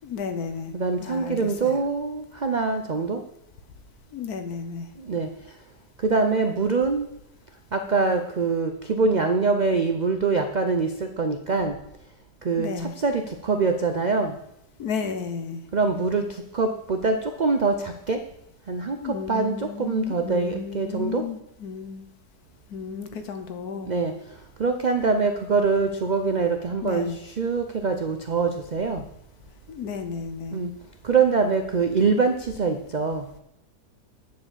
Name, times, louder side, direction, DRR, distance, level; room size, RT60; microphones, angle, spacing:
voice 1, 0.0-0.7 1.0-1.8 4.1-4.9 12.6-12.9 14.8-15.6 19.0-22.1 22.7-23.9 26.8-27.2 29.7-30.6, left 5 dB, 70° left, 8 dB, 1.5 m, -33 dB
voice 2, 0.7-3.2 5.0-5.3 6.0-7.1 7.7-11.8 12.4-14.4 15.7-18.2 18.7-21.3 23.8-29.0 30.5-30.7 31.0-33.3, right 4 dB, 90° right, 6 dB, 0.4 m, -24 dB
10.5 x 4.8 x 7.3 m, 0.82 s
omnidirectional pair, 1.7 m